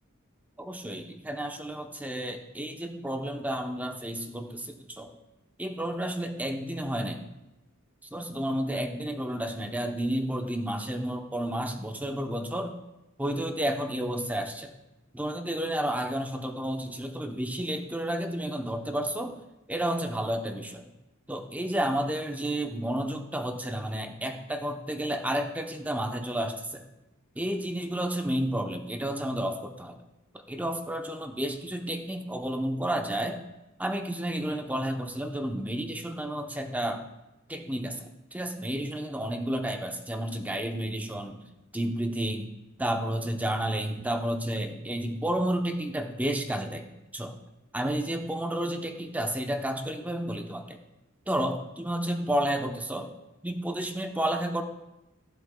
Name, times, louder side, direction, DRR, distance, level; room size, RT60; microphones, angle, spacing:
voice 1, 0.6-5.1 5.6-7.2 8.1-12.8 13.2-14.7 15.1-19.4 19.7-20.8 21.3-26.8 27.4-30.0 30.3-33.4 33.8-37.0 37.5-38.0 38.3-41.4 41.7-42.5 42.8-46.9 47.1-47.3 47.7-50.8 51.3-53.1 53.4-54.6, right 1 dB, 10° right, 5 dB, 0.7 m, -31 dB
15.5 x 7.5 x 2.2 m, 0.97 s
head